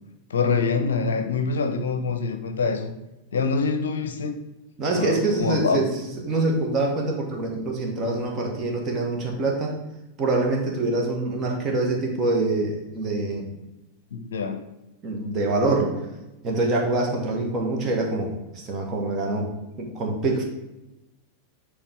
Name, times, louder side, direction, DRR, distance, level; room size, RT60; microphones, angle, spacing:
voice 1, 0.3-2.9 3.3-4.3 4.9-5.9 14.1-14.7, left 4 dB, 65° left, 7 dB, 0.6 m, -25 dB
voice 2, 4.8-9.7 10.2-13.5 15.0-15.9 16.4-19.5 19.8-20.4, right 2 dB, 30° right, 0 dB, 1.7 m, -25 dB
9.3 x 3.4 x 3.6 m, 0.96 s
figure-of-eight pair, 90°, 0 cm